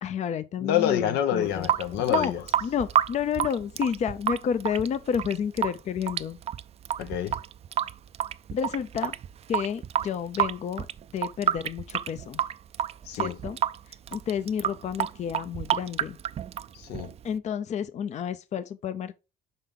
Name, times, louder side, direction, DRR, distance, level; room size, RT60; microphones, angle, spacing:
voice 1, 0.0-1.7 2.1-2.3 2.6-6.4 8.5-9.1 9.5-10.9 11.1-12.4 13.1-13.6 14.1-16.2 17.2-19.1, left 8 dB, 45° left, 0.5 m, -30 dB
voice 2, 0.6-2.4 7.0-7.4 13.0-13.4 16.7-17.1, left 10 dB, 90° left, 1.0 m, -27 dB
Water tap faucet / Sink (filling or washing) / Drip, 1.4-17.4, right 10 dB, 40° right, 0.4 m, -30 dB
5.6 x 5.4 x 3.8 m
cardioid pair, 110°, 17 cm